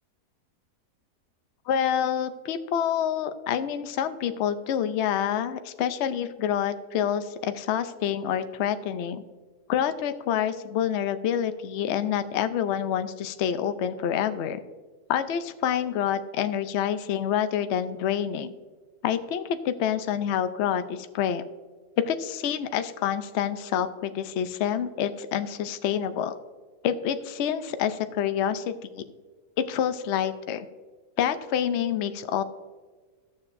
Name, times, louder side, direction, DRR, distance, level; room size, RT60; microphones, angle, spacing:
voice 1, 1.7-9.2 9.7-14.6 15.1-18.5 19.0-21.4 22.1-26.3 26.8-29.0 29.6-30.7 31.2-32.4, left 9 dB, 65° left, 10 dB, 0.7 m, -27 dB
13.5 x 7.1 x 2.6 m, 1.4 s
omnidirectional pair, 1.7 m